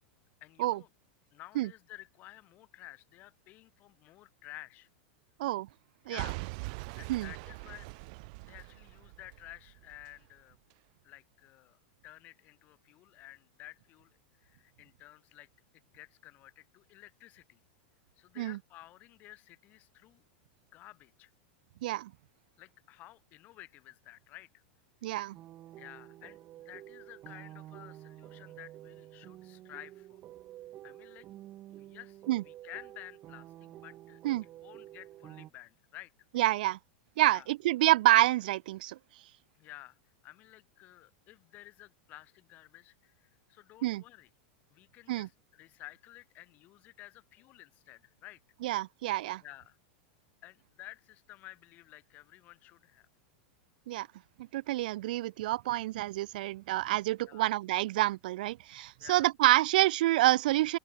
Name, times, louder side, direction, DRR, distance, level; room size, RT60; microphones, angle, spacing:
voice 1, 0.4-0.9 1.3-4.9 6.0-6.4 6.9-8.1 8.4-10.6 11.0-15.5 15.7-17.6 18.2-20.2 20.7-21.3 22.6-24.6 25.8-30.2 30.8-31.3 31.7-32.2 32.4-36.1 37.3-37.5 39.6-40.0 40.2-44.3 44.7-48.4 49.4-49.8 50.4-53.1 57.2-57.5 59.0-59.3, left 17 dB, 35° left, 3.5 m, -52 dB
Boom / Shatter / Crushing, 6.2-10.2 10.7-10.8, right 30 dB, 50° right, 3.4 m, -42 dB
voice 2, 25.0-25.4 32.3-32.4 34.2-34.4 36.3-36.8 37.2-39.0 43.8-44.0 45.1-45.3 48.6-49.4 53.9-54.1 54.5-60.8, right 16 dB, 65° right, 1.3 m, -28 dB
sound 1, 25.3-35.5, right 14 dB, 30° right, 5.1 m, -50 dB
open air
supercardioid pair, 160°, 5 cm